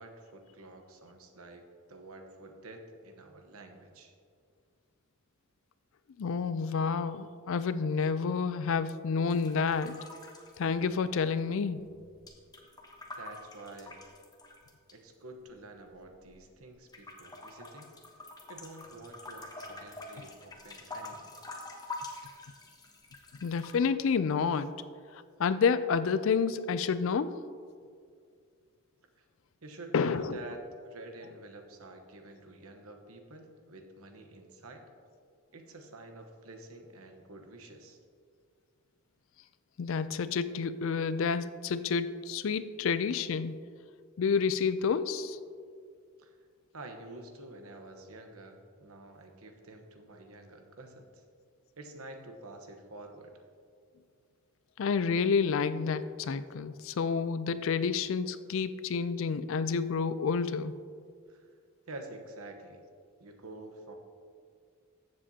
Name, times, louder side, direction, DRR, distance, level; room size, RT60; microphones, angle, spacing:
voice 1, 0.0-1.6 1.9-4.1 13.2-14.0 14.9-17.9 18.5-21.4 29.2-29.3 29.6-34.8 35.5-38.0 46.2-46.4 46.7-51.2 51.8-53.3 61.3-61.5 61.9-62.8 63.2-63.9, right 2 dB, 80° right, 4 dB, 1.1 m, -48 dB
voice 2, 6.2-10.0 10.6-11.8 23.4-24.7 25.4-27.3 29.9-30.4 39.8-43.5 44.2-45.4 54.8-60.8, left 5 dB, 60° left, 14 dB, 0.4 m, -29 dB
sound 1, 9.3-11.3 11.6-14.9 15.6-16.5 16.9-23.8, left 2 dB, 20° left, 0.9 m, -46 dB
14.0 x 7.5 x 2.8 m, 2.1 s
head